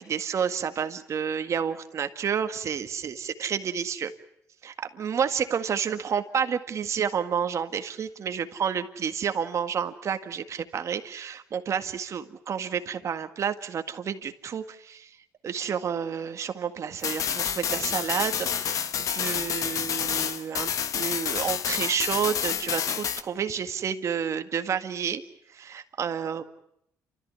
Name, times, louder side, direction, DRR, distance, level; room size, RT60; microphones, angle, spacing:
voice 1, 0.0-4.1 4.6-15.1 15.4-25.2 25.5-26.4, right 7 dB, 50° right, 8 dB, 1.8 m, -30 dB
sound 1, 17.0-23.2, left 8 dB, 60° left, 1.2 m, -29 dB
29.0 x 14.0 x 9.8 m, 0.76 s
cardioid pair, 100°, 7 cm